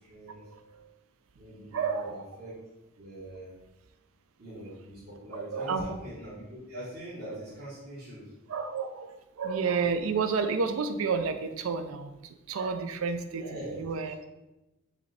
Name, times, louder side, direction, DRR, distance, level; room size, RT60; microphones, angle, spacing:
voice 1, 0.0-0.9 1.4-2.5 3.0-3.5 4.4-8.3 13.3-13.9, right 1 dB, 50° right, -11 dB, 1.2 m, -43 dB
voice 2, 1.7-2.3 5.3-5.9 8.5-14.1, right 5 dB, 90° right, 8 dB, 0.4 m, -30 dB
5.2 x 2.7 x 3.2 m, 1.0 s
head